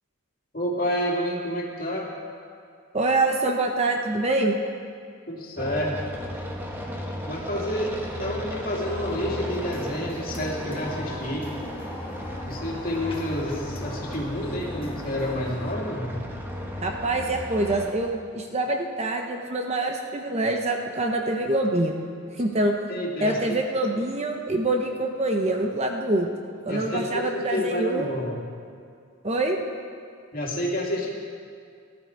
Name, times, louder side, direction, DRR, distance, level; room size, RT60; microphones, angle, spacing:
voice 1, 0.5-2.1 5.3-5.9 7.2-11.5 12.4-16.3 22.9-23.6 26.7-28.4 30.3-31.1, left 1 dB, 40° left, -3 dB, 2.5 m, -29 dB
voice 2, 2.9-4.6 16.8-22.0 22.4-22.7 23.2-26.3 26.6-28.1 29.2-29.6, right 2 dB, 30° right, 3 dB, 0.8 m, -25 dB
sound 1, 5.6-17.9, equal, 10° right, 1.2 m, -35 dB
sound 2, 8.8-15.7, left 1 dB, 25° left, 1.6 m, -40 dB
17.5 x 12.0 x 4.6 m, 2.3 s
head